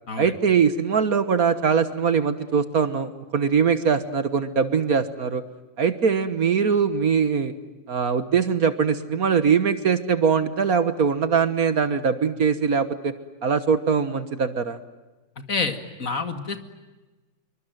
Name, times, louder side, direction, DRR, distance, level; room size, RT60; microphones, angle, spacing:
voice 1, 0.2-5.4 5.8-7.5 7.9-13.1 13.4-14.8, right 6 dB, 55° right, 11 dB, 1.7 m, -22 dB
voice 2, 15.5-16.6, left 4 dB, 45° left, 7 dB, 2.5 m, -28 dB
27.0 x 24.0 x 9.3 m, 1.2 s
omnidirectional pair, 1.9 m